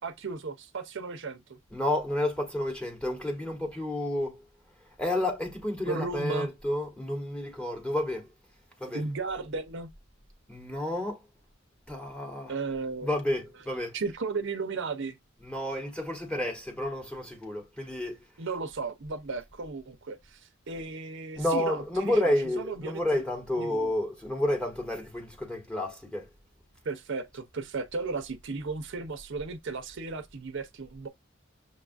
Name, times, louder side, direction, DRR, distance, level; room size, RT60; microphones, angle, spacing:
voice 1, 0.0-1.6 5.9-6.5 8.9-9.9 12.5-13.1 13.9-15.2 18.4-23.2 23.6-23.9 26.8-31.1, right 4 dB, 60° right, 0.6 m, -35 dB
voice 2, 1.7-4.4 5.0-8.3 8.8-9.1 10.5-11.2 11.9-12.6 13.0-14.0 15.4-18.2 21.4-26.3, left 1 dB, 5° left, 1.0 m, -30 dB
6.4 x 2.3 x 2.5 m
head